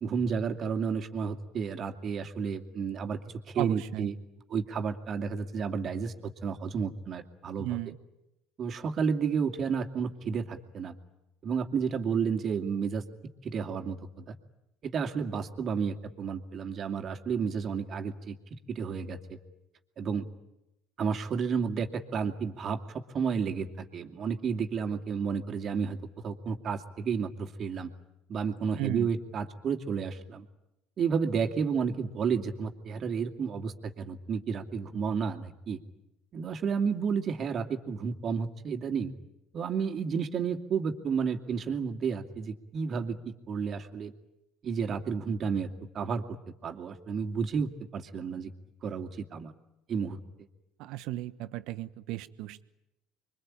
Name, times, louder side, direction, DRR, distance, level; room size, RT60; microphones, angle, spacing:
voice 1, 0.0-3.2 3.5-4.1 4.5-7.7 8.6-10.9 11.4-13.0 13.4-14.4 14.8-18.4 18.7-19.4 20.0-20.3 21.0-26.0 26.2-27.9 28.3-30.4 31.0-35.8 36.3-39.1 39.5-44.1 44.6-45.7 45.9-46.2 46.6-48.5 48.8-49.5 49.9-50.2, right 6 dB, 45° right, 5 dB, 2.5 m, -31 dB
voice 2, 3.6-4.1 7.6-8.0 28.8-29.1 50.8-52.6, right 15 dB, 65° right, 13 dB, 1.2 m, -35 dB
26.0 x 23.5 x 8.8 m, 0.92 s
hypercardioid pair, 70°, 0 cm